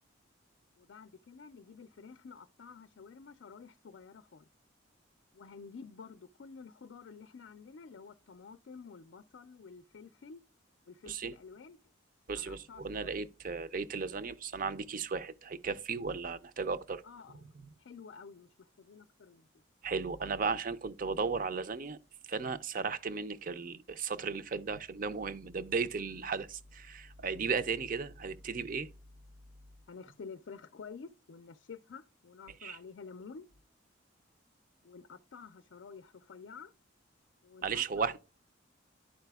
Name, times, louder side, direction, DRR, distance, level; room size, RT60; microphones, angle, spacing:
voice 1, 0.8-4.5 5.3-10.4 10.9-11.8 12.4-13.1 17.0-17.5 17.8-19.5 29.9-33.5 34.8-36.7 37.4-38.2, left 5 dB, 65° left, 0.4 m, -50 dB
voice 2, 12.3-17.0 17.6-17.7 19.8-22.0 22.3-28.9 32.6-32.8 37.6-38.2, right 5 dB, 45° right, 0.5 m, -35 dB
11.5 x 4.8 x 2.2 m
head